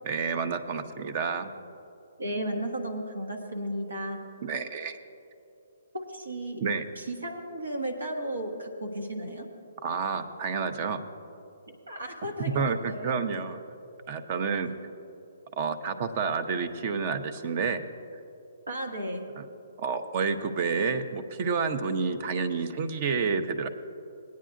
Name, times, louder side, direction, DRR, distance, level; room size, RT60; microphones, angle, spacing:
voice 1, 0.0-1.5 4.4-5.0 6.6-6.9 9.8-11.0 12.5-13.6 14.1-14.7 15.6-17.8 19.4-19.5 19.8-23.7, right 5 dB, 40° right, 9 dB, 0.7 m, -29 dB
voice 2, 2.2-4.2 5.9-6.7 6.9-9.5 11.9-13.2 18.7-19.3, right 1 dB, 90° right, 3 dB, 1.3 m, -34 dB
20.5 x 9.4 x 2.5 m, 2.8 s
hypercardioid pair, 135°, 0 cm